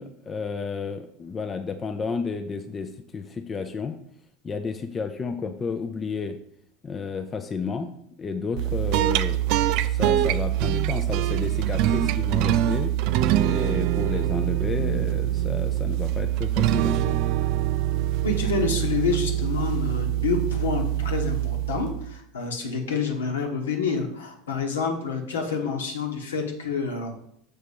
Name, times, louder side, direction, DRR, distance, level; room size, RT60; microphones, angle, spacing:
voice 1, 0.0-4.0 4.4-6.4 6.8-7.9 8.2-9.4 9.8-12.9 13.4-17.2, left 5 dB, 25° left, 7 dB, 0.5 m, -32 dB
sound 1, 8.6-22.1, right 13 dB, 50° right, 0.3 m, -24 dB
voice 2, 18.2-27.2, left 4 dB, 70° left, 3 dB, 1.2 m, -28 dB
6.8 x 4.3 x 5.1 m, 0.70 s
figure-of-eight pair, 75°, 0 cm